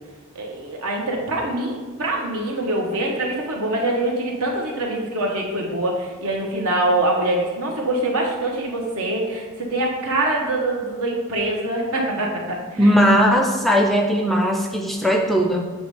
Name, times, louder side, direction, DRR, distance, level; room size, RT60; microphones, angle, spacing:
voice 1, 0.3-13.0, right 1 dB, 75° right, -1 dB, 1.2 m, -24 dB
voice 2, 12.8-15.6, equal, ahead, 2 dB, 0.4 m, -18 dB
7.1 x 3.2 x 4.8 m, 1.5 s
head